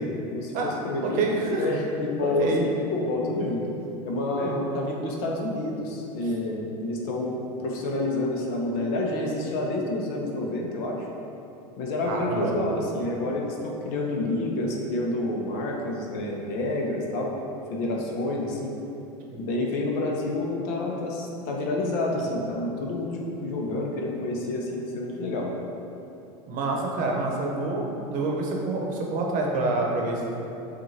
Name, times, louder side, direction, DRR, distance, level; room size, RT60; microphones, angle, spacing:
voice 1, 0.2-1.2 1.6-3.6 4.0-11.1 11.8-17.3 17.7-18.8 19.3-25.5, left 2 dB, 60° left, -1 dB, 0.9 m, -28 dB
voice 2, 1.0-1.7 2.2-2.6 4.3-4.6 12.1-12.5 19.3-19.4 26.5-30.3, right 2 dB, 45° right, -1 dB, 0.9 m, -27 dB
7.4 x 2.6 x 2.8 m, 2.8 s
hypercardioid pair, 105°, 19 cm